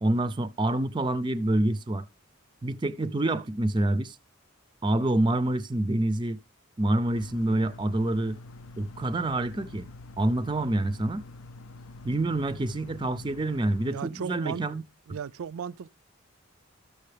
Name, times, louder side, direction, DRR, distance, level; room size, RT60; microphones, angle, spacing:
voice 1, 0.0-2.0 2.6-4.2 4.8-6.4 6.8-8.4 8.8-9.9 10.2-11.2 12.0-14.8, right 1 dB, 20° right, 0.4 m, -27 dB
sound 1, 7.1-13.9, left 2 dB, 80° left, 0.5 m, -46 dB
voice 2, 13.9-14.7 15.1-15.9, right 7 dB, 85° right, 0.4 m, -35 dB
12.5 x 6.7 x 3.3 m
head